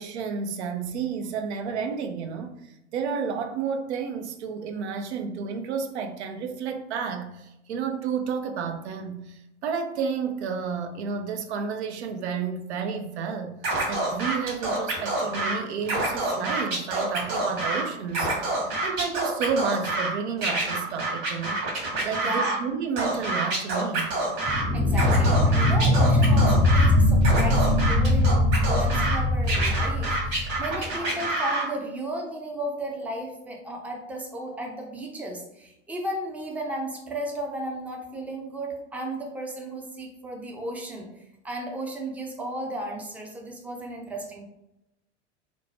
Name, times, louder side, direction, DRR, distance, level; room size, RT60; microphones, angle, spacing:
voice 1, 0.0-13.5 13.9-21.6 22.0-24.1, right 6 dB, 65° right, 5 dB, 0.5 m, -31 dB
Scratching (performance technique), 13.6-15.5 15.8-17.8 18.1-20.1 20.4-22.6 23.0-24.6 24.9-26.9 27.2-29.2 29.5-31.6, right 2 dB, 45° right, 1.4 m, -27 dB
voice 2, 22.2-22.6 24.7-44.5, right 1 dB, 5° right, 0 dB, 0.5 m, -34 dB
sound 1, 24.5-30.9, left 1 dB, 30° right, 0.8 m, -21 dB
2.9 x 2.1 x 2.8 m, 0.87 s
figure-of-eight pair, 85°, 35 cm